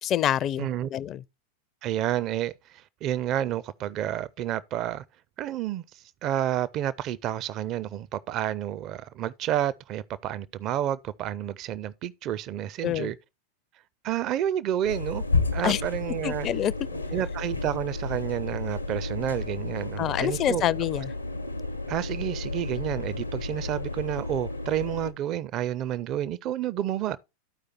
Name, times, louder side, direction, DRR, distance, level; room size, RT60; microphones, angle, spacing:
voice 1, 0.0-1.2 12.8-13.1 15.6-15.8 16.2-16.7 20.0-21.1, left 11 dB, 30° left, 0.4 m, -26 dB
voice 2, 0.6-0.9 1.8-5.0 5.4-13.2 14.0-15.2 15.5-16.5 17.1-20.7 21.9-27.2, right 11 dB, 35° right, 0.5 m, -30 dB
sound 1, 14.8-25.1, left 3 dB, 85° left, 0.9 m, -32 dB
13.0 x 4.9 x 4.3 m
figure-of-eight pair, 90°, 0 cm